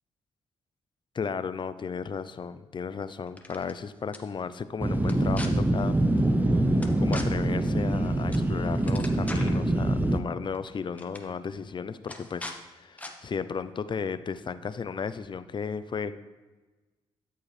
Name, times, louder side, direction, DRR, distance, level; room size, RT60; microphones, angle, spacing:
voice 1, 1.1-6.0 6.4-6.6 7.0-16.1, left 6 dB, 45° left, 13 dB, 0.5 m, -34 dB
sound 1, 3.3-3.7 4.1-4.2 5.0-5.5 6.8-7.3 8.3-8.5 8.7-9.6 10.5-10.7 11.0-11.2 12.1-12.6 13.0-13.1, left 1 dB, 15° left, 1.1 m, -40 dB
sound 2, 4.8-10.2, right 1 dB, 15° right, 0.7 m, -25 dB
13.0 x 4.5 x 3.3 m, 1.2 s
supercardioid pair, 55°, 11 cm